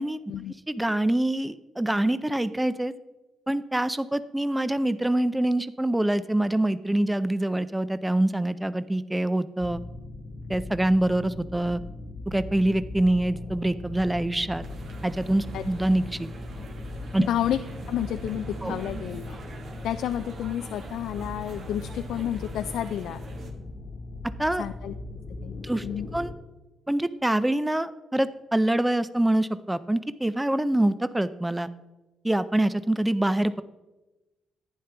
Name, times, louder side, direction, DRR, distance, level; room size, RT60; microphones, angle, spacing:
voice 1, 0.7-2.9 3.5-9.8 10.5-11.8 12.3-14.6 15.0-16.3 17.1-17.3 18.6-18.8 24.4-24.7 25.6-25.9 26.1-26.3 26.9-31.7 32.2-33.6, right 1 dB, 10° right, 14 dB, 0.5 m, -25 dB
sound 1, 9.6-26.4, left 2 dB, 45° left, 1.2 m, -39 dB
sound 2, 14.6-23.5, right 3 dB, 60° right, 1.5 m, -43 dB
voice 2, 17.3-17.6 17.9-19.4 19.8-23.2 24.6-24.9 25.4-26.1, left 11 dB, 80° left, 9 dB, 0.3 m, -30 dB
11.0 x 9.5 x 3.4 m, 1.1 s
cardioid pair, 90°, 0 cm